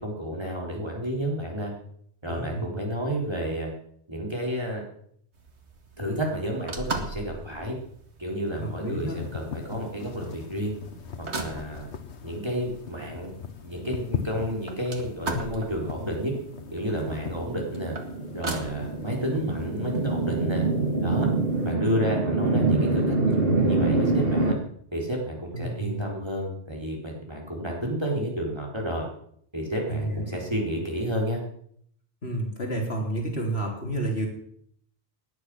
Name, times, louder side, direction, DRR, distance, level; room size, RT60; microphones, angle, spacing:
voice 1, 0.0-1.7 2.2-3.7 4.1-4.8 6.0-7.8 8.2-10.8 11.3-11.9 12.2-13.3 13.6-16.3 16.7-18.0 18.3-20.6 21.0-21.3 21.6-24.6 24.9-29.1 29.5-31.4, equal, 25° right, -1 dB, 4.0 m, -31 dB
voice 2, 2.3-2.7 8.6-9.2 25.5-26.1 29.9-30.3 32.2-34.3, right 1 dB, 65° left, 0 dB, 4.2 m, -30 dB
sound 1, 5.3-20.7, right 3 dB, 80° right, 2.3 m, -40 dB
sound 2, 8.5-21.7, left 7 dB, 90° left, 1.3 m, -40 dB
sound 3, 16.8-24.5, right 3 dB, 60° right, 2.0 m, -25 dB
18.0 x 10.5 x 6.2 m, 0.65 s
omnidirectional pair, 1.1 m